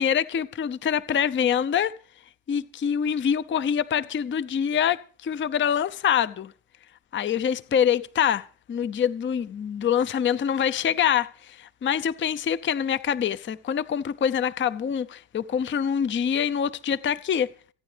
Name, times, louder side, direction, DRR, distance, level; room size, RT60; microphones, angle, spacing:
voice 1, 0.0-1.9 2.5-6.5 7.1-17.5, left 8 dB, 25° left, 0.6 m, -25 dB
28.0 x 9.5 x 3.4 m
supercardioid pair, 75°, 47 cm